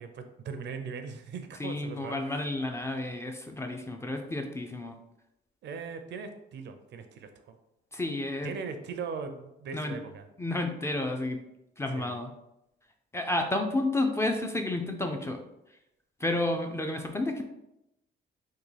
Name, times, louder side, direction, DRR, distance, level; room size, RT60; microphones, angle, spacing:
voice 1, 0.0-2.2 5.6-7.6 8.4-10.2 11.9-12.2, right 5 dB, 60° right, 8 dB, 0.5 m, -39 dB
voice 2, 1.6-4.9 7.9-8.5 9.7-10.0 10.4-11.4 11.8-12.3 13.1-15.4 16.2-17.4, left 2 dB, 15° left, 4 dB, 0.4 m, -31 dB
3.6 x 2.2 x 3.2 m, 0.85 s
cardioid pair, 90°, 20 cm